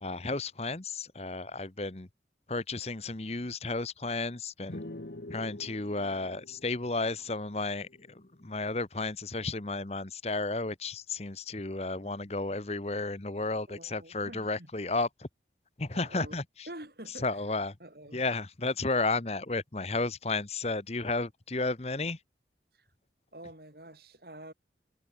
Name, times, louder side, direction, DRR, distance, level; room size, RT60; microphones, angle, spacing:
voice 1, 0.0-2.1 2.5-4.8 5.3-15.3 15.8-16.7 17.1-17.8 18.1-22.2, left 3 dB, 35° left, 1.1 m, -33 dB
sound 1, 4.7-8.3, left 1 dB, 70° left, 1.5 m, -46 dB
voice 2, 13.7-14.7 15.9-16.4 16.7-17.3 17.8-18.2 22.7-22.9 23.3-24.5, right 1 dB, 60° right, 7.7 m, -47 dB
head